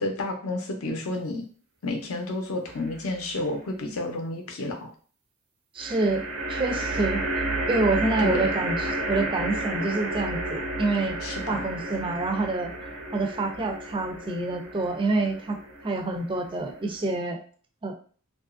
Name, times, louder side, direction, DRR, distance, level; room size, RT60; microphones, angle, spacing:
voice 1, 0.0-1.4 1.8-4.9 8.2-8.4 11.2-11.7, left 2 dB, 80° left, 4 dB, 0.6 m, -30 dB
sound 1, 2.7-3.3 5.8-17.2, right 2 dB, 80° right, 0.6 m, -32 dB
voice 2, 5.7-6.2 6.5-7.2 7.7-11.2 11.5-12.7 13.1-15.6 15.8-17.4 17.8-17.9, right 2 dB, 25° right, 3 dB, 0.3 m, -27 dB
2.8 x 2.4 x 2.5 m, 0.42 s
head